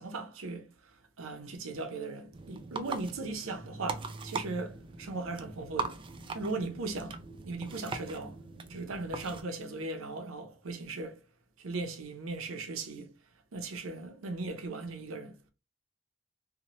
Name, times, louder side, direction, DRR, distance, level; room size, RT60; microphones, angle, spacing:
voice 1, 0.0-6.0 6.3-7.2 7.4-8.4 8.7-11.2 11.6-13.1 13.5-15.4, right 3 dB, 85° right, 0.6 m, -38 dB
sound 1, 2.3-9.4, right 4 dB, 25° right, 0.3 m, -41 dB
2.8 x 2.1 x 2.9 m
head